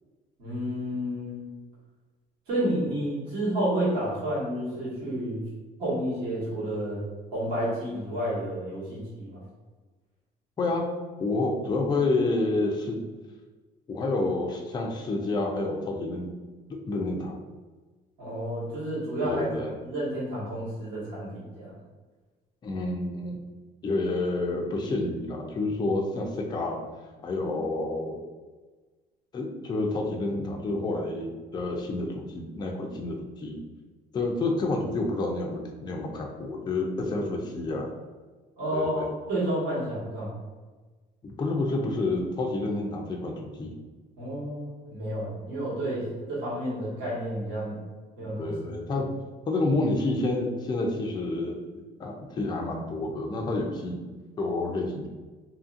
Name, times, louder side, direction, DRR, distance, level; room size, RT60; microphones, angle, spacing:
voice 1, 0.4-1.4 2.5-5.4 5.8-7.0 7.3-9.4 18.2-19.5 19.8-21.8 38.6-40.3 44.2-47.8 48.2-48.5 48.9-49.0, right 1 dB, 70° right, -8 dB, 1.4 m, -30 dB
voice 2, 10.6-10.9 11.2-13.0 13.9-16.3 16.9-17.4 19.2-19.8 22.6-23.4 23.8-26.8 27.2-28.2 29.3-33.6 34.1-37.9 38.7-39.1 41.2-43.7 48.2-49.1 49.5-51.6 52.0-54.0 54.4-55.1, left 2 dB, 25° left, 0 dB, 0.4 m, -29 dB
2.7 x 2.6 x 2.5 m, 1.3 s
cardioid pair, 110°, 17 cm